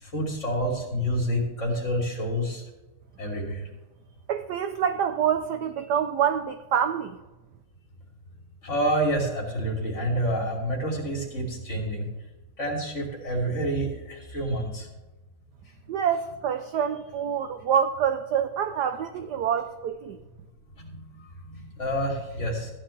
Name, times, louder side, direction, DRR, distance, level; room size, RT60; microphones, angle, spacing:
voice 1, 0.0-2.6 3.2-3.6 8.6-12.0 12.6-14.9 20.8-22.7, equal, 35° left, -2 dB, 3.3 m, -28 dB
voice 2, 4.3-7.2 15.9-20.2, right 8 dB, 70° right, 9 dB, 1.0 m, -26 dB
15.5 x 10.0 x 3.3 m, 1.1 s
omnidirectional pair, 2.3 m